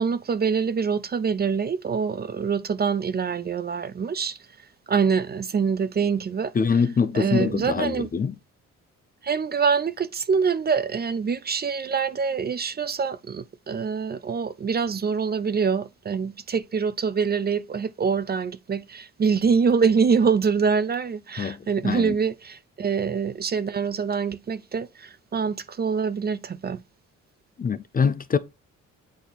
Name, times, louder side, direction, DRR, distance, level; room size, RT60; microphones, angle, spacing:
voice 1, 0.0-4.4 4.9-6.5 7.1-8.1 9.2-26.8, right 6 dB, 30° right, 0.5 m, -25 dB
voice 2, 6.5-8.3 21.4-21.6 21.8-22.1 27.6-28.4, left 5 dB, 30° left, 0.5 m, -24 dB
8.4 x 2.9 x 4.0 m
cardioid pair, 90°, 30 cm